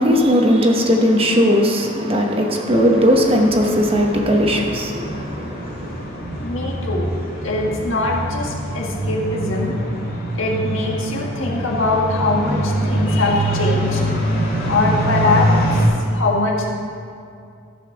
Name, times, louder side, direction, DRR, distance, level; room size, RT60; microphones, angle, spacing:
voice 1, 0.0-6.1, equal, 25° right, 1.0 m, -17 dB
sound 1, 2.7-15.9, right 1 dB, 45° left, 2.6 m, -24 dB
voice 2, 6.4-7.1 7.4-9.8 10.3-14.0 14.7-15.8 16.1-16.7, left 2 dB, 70° left, 1.7 m, -22 dB
14.0 x 5.5 x 6.1 m
head